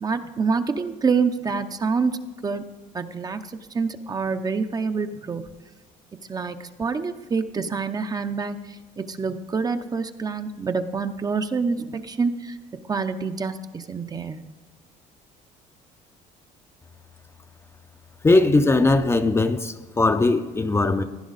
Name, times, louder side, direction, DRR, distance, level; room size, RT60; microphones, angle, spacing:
voice 1, 0.0-2.2 2.4-2.7 2.9-3.4 3.7-5.5 6.3-12.6 12.9-14.4, right 5 dB, 25° right, 0.7 m, -26 dB
voice 2, 18.2-21.0, left 2 dB, 15° left, 0.6 m, -19 dB
16.5 x 10.5 x 4.0 m
cardioid pair, 110°, 15 cm